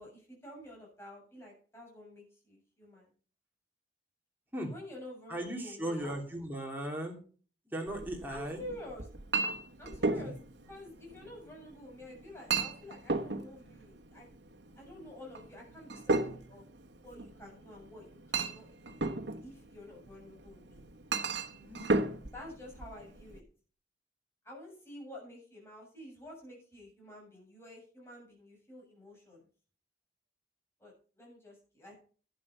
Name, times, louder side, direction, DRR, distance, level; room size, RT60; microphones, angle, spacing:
voice 1, 0.0-3.1 4.6-6.2 8.3-9.1 9.8-10.4 10.7-14.3 14.8-16.7 17.0-19.0 19.4-20.8 22.3-23.4 24.4-29.4 30.8-32.0, left 1 dB, 15° left, -2 dB, 7.3 m, -49 dB
voice 2, 5.3-7.2 7.7-8.6 10.2-10.4 21.5-22.0, right 1 dB, 10° right, 0 dB, 2.9 m, -38 dB
Chink clink, 7.9-23.4, right 3 dB, 80° right, 1.1 m, -36 dB
11.5 x 9.4 x 5.5 m, 0.41 s
head